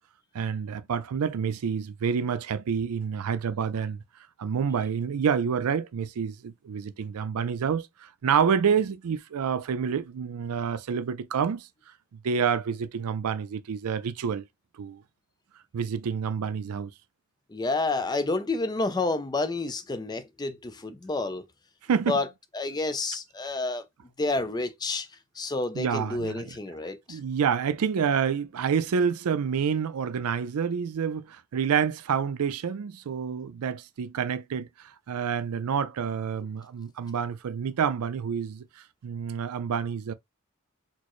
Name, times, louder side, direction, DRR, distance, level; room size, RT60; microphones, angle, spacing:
voice 1, 0.3-4.0 4.4-11.7 12.2-14.4 14.8-15.0 15.7-16.9 21.9-22.2 25.7-26.6 27.1-38.6 39.0-40.1, right 7 dB, 85° right, 0.4 m, -28 dB
voice 2, 17.5-21.4 22.1-22.3 22.5-23.8 24.2-25.1 25.4-27.2, left 3 dB, 20° left, 0.4 m, -29 dB
4.4 x 2.0 x 3.0 m
head